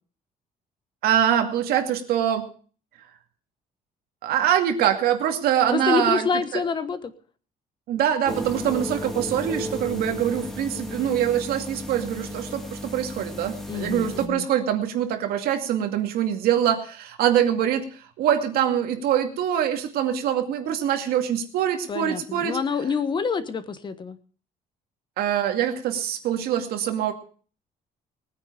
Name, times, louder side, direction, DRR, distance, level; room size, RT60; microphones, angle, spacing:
voice 1, 1.0-2.5 4.2-6.6 7.9-22.6 25.2-27.1, right 10 dB, 85° right, 5 dB, 2.3 m, -24 dB
voice 2, 5.7-7.1 13.7-14.5 21.9-24.2, left 5 dB, 30° left, 12 dB, 1.2 m, -27 dB
sound 1, 8.2-14.3, left 1 dB, ahead, 2.1 m, -34 dB
20.0 x 9.4 x 5.1 m, 0.41 s
cardioid pair, 145°, 16 cm